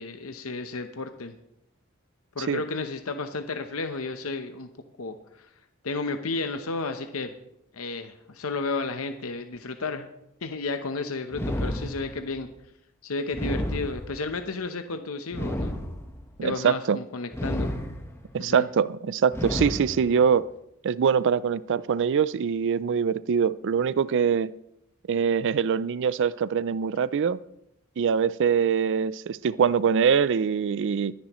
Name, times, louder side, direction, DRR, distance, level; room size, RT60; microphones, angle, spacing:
voice 1, 0.0-1.4 2.4-4.7 5.0-5.2 5.8-7.3 7.7-10.1 10.4-12.5 13.0-15.8 16.4-17.7 18.4-18.7, left 3 dB, 70° left, 7 dB, 0.9 m, -32 dB
sound 1, 11.3-12.4 13.3-14.4 15.3-16.4 17.3-18.4 19.3-20.4, left 1 dB, 10° left, 1.1 m, -31 dB
voice 2, 16.4-17.0 18.3-20.4 20.8-24.5 25.1-27.4 28.0-31.1, right 7 dB, 60° right, 18 dB, 0.4 m, -23 dB
23.0 x 10.0 x 3.1 m, 0.79 s
head